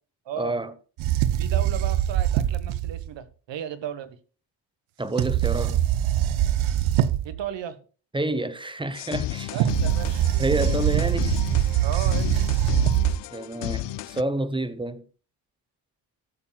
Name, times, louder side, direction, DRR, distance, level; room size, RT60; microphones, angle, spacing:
voice 1, 0.4-0.7 5.0-5.8 8.1-9.6 10.4-11.4 13.3-15.0, right 2 dB, 10° right, 1.0 m, -28 dB
sound 1, 1.0-3.1 5.2-7.4 9.5-13.2, right 12 dB, 85° right, 0.8 m, -23 dB
voice 2, 1.4-4.2 7.2-7.8 9.5-10.3 11.8-12.4, right 9 dB, 70° right, 1.4 m, -35 dB
sound 2, 8.9-14.2, left 15 dB, 65° left, 0.5 m, -32 dB
13.0 x 7.5 x 2.3 m
cardioid pair, 85°, 46 cm